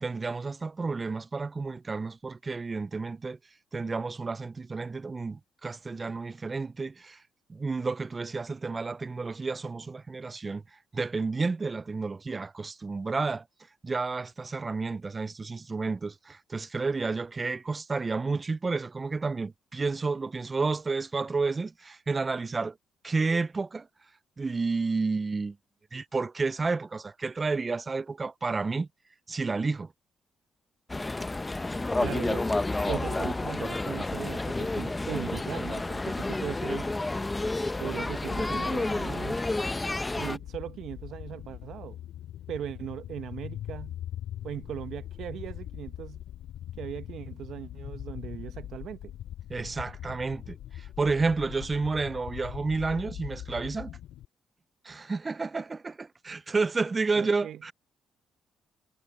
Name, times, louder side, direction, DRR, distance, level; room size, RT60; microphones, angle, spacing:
voice 1, 0.0-3.4 3.7-7.2 7.5-10.6 10.9-13.4 13.8-22.8 23.0-23.9 24.4-25.6 25.9-28.9 29.3-29.9 49.5-54.0 54.8-57.7, right 4 dB, 30° right, 0.3 m, -31 dB
sound 1, 30.9-40.4, left 2 dB, 20° left, 0.6 m, -30 dB
voice 2, 32.0-32.5 32.9-36.9 37.8-39.5 40.2-42.0 42.5-44.0 44.4-46.2 46.8-49.1 57.1-57.6, right 10 dB, 70° right, 0.8 m, -38 dB
sound 2, 40.2-54.3, left 12 dB, 80° left, 2.9 m, -41 dB
cardioid pair, 90°, 0 cm